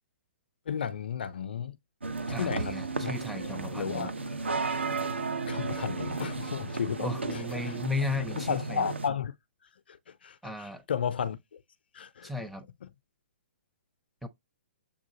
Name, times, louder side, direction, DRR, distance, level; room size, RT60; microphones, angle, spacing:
voice 1, 0.7-1.8 2.3-2.8 3.0-3.1 3.7-4.1 5.5-7.4 8.4-9.3 9.9-11.6 11.9-12.3, left 7 dB, 60° left, 0.4 m, -33 dB
sound 1, 2.0-9.1, right 3 dB, 75° right, 0.7 m, -34 dB
voice 2, 2.3-4.2 6.1-6.2 7.0-8.9 10.4-10.8 12.2-12.7 14.2-14.3, left 2 dB, ahead, 0.5 m, -35 dB
6.8 x 2.4 x 2.8 m
figure-of-eight pair, 120°, 6 cm